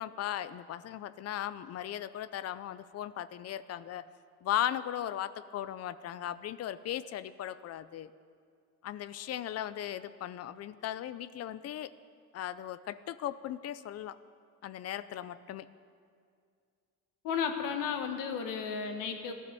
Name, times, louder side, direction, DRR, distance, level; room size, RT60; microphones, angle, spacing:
voice 1, 0.0-4.1 4.4-8.1 8.8-11.9 12.3-14.2 14.6-15.7, left 11 dB, 50° left, 15 dB, 0.6 m, -37 dB
voice 2, 17.2-19.3, left 6 dB, 80° left, 6 dB, 1.7 m, -33 dB
17.0 x 12.0 x 6.9 m, 2.3 s
cardioid pair, 145°, 31 cm